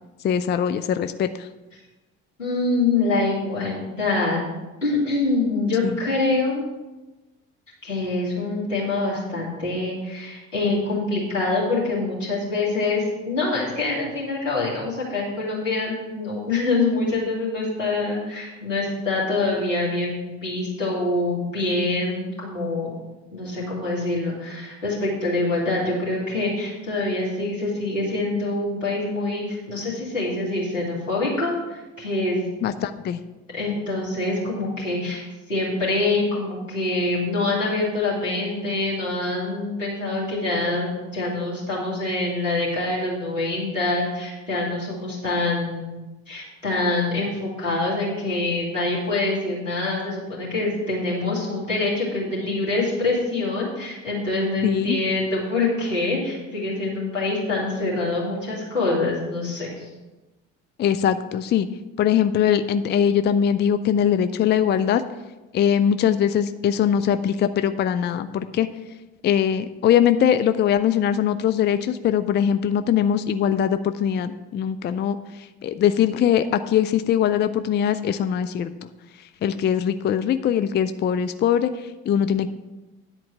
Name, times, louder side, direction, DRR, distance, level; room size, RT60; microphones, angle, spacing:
voice 1, 0.2-1.5 5.8-6.0 32.6-33.2 54.6-55.0 60.8-61.7 62.0-65.0 65.5-68.7 69.2-78.7 79.4-82.5, left 9 dB, 30° left, 11 dB, 0.5 m, -21 dB
voice 2, 2.4-4.4 4.8-6.6 7.8-22.9 23.3-32.4 33.5-35.2 35.5-46.0 46.3-59.8, left 2 dB, 90° left, -7 dB, 2.6 m, -25 dB
10.5 x 4.5 x 7.2 m, 1.1 s
figure-of-eight pair, 50°, 38 cm